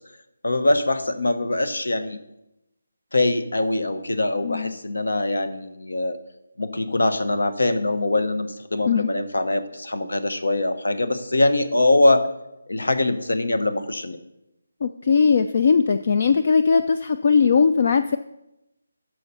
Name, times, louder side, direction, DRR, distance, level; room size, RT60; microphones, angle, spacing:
voice 1, 0.4-2.2 3.1-6.2 6.6-12.3 12.7-14.2, left 2 dB, 75° left, 11 dB, 0.9 m, -22 dB
voice 2, 4.4-4.8 8.9-9.1 14.8-18.2, left 5 dB, 45° left, 10 dB, 0.4 m, -19 dB
13.0 x 4.6 x 5.5 m, 0.91 s
figure-of-eight pair, 155°, 0 cm